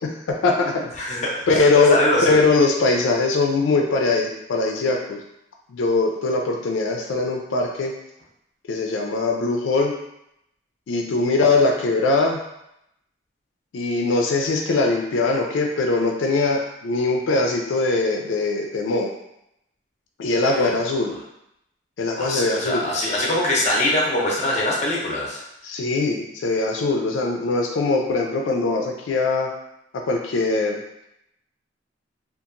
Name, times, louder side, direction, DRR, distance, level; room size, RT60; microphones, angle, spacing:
voice 1, 0.0-0.7 1.0-1.2 1.5-5.2 5.7-7.9 8.7-9.9 10.9-12.4 13.7-19.1 20.2-21.1 22.0-22.9 25.6-29.5 30.1-30.8, left 3 dB, 85° left, 1 dB, 0.4 m, -21 dB
voice 2, 1.0-2.5 20.5-20.7 22.2-25.4, left 1 dB, 35° left, -3 dB, 0.6 m, -23 dB
2.8 x 2.4 x 2.5 m, 0.82 s
head